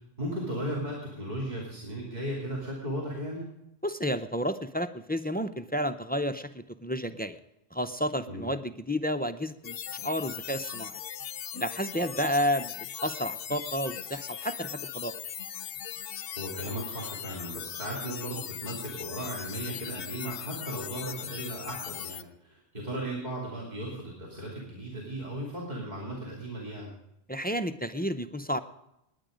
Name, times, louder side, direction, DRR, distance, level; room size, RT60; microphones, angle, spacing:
voice 1, 0.0-3.4 8.3-8.4 16.4-26.9, right 1 dB, 40° right, -4 dB, 2.9 m, -36 dB
voice 2, 3.8-7.4 7.7-11.0 11.5-15.1 27.3-28.6, equal, 15° left, 10 dB, 0.3 m, -31 dB
sound 1, 9.6-22.2, left 9 dB, 65° left, 0.8 m, -39 dB
19.5 x 9.6 x 5.1 m, 0.85 s
omnidirectional pair, 1.1 m